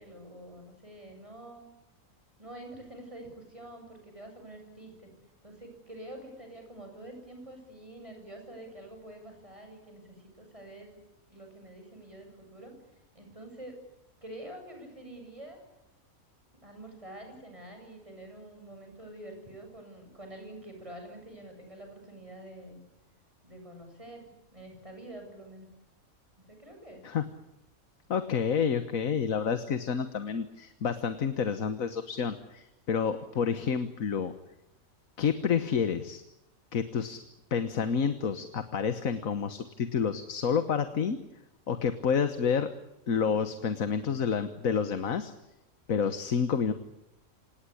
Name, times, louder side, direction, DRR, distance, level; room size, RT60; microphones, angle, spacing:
voice 1, 0.0-1.7 2.4-5.1 5.4-10.9 11.3-12.7 13.1-13.8 14.2-15.6 16.6-22.8 23.4-25.7 26.4-27.0, right 1 dB, 25° right, 3 dB, 7.8 m, -47 dB
voice 2, 28.1-34.3 35.2-36.2 36.7-37.2 37.5-41.2 41.7-42.7 43.1-45.3 45.9-46.7, left 6 dB, 75° left, 10 dB, 1.7 m, -29 dB
26.5 x 19.0 x 10.0 m, 0.88 s
omnidirectional pair, 1.4 m